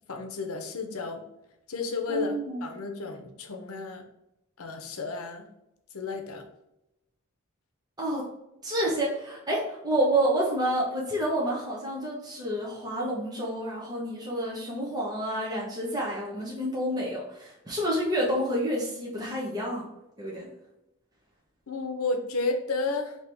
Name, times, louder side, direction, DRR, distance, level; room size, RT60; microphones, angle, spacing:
voice 1, 0.1-1.2 1.7-2.3 2.6-4.0 4.6-5.5 5.9-6.4 21.7-23.2, left 3 dB, 75° left, 4 dB, 0.7 m, -32 dB
voice 2, 2.1-2.7 8.0-8.2 8.6-19.9 20.2-20.5, right 1 dB, 15° right, -5 dB, 0.9 m, -29 dB
4.6 x 2.9 x 3.4 m, 0.89 s
head